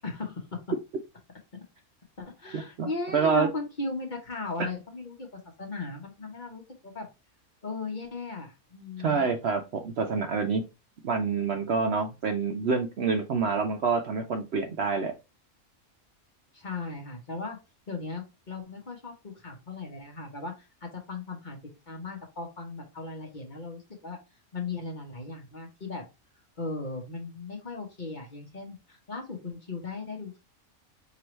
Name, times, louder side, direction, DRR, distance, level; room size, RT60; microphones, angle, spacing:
voice 1, 0.0-0.6 2.2-7.1 7.6-9.2 16.5-17.6 17.9-21.6 21.9-24.2 24.5-26.0 26.6-30.4, left 3 dB, 35° left, 2 dB, 1.0 m, -37 dB
voice 2, 2.5-3.5 9.0-10.6 11.0-15.1, right 5 dB, 60° right, 5 dB, 0.7 m, -27 dB
4.6 x 3.0 x 3.0 m, 0.26 s
omnidirectional pair, 1.5 m